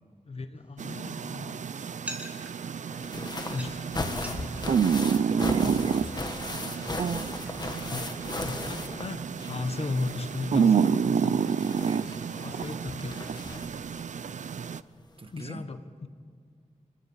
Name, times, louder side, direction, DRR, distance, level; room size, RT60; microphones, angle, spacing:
voice 1, 0.2-1.6 3.5-4.6 5.6-6.0 7.9-11.4 12.4-13.2 15.3-16.1, left 3 dB, 55° left, 9 dB, 1.4 m, -36 dB
sound 1, 0.5-7.8, right 1 dB, 10° right, 3.0 m, -48 dB
sound 2, 0.8-14.8, right 7 dB, 75° right, 0.6 m, -29 dB
sound 3, 2.9-9.7 9.9-13.9 15.0-15.1 15.4-15.5, left 2 dB, 35° left, 1.7 m, -38 dB
voice 2, 5.3-7.3 11.8-12.2 15.2-15.6, right 3 dB, 45° right, 9 dB, 1.5 m, -41 dB
29.5 x 22.0 x 5.7 m, 2.1 s
wide cardioid pair, 135°, 13 cm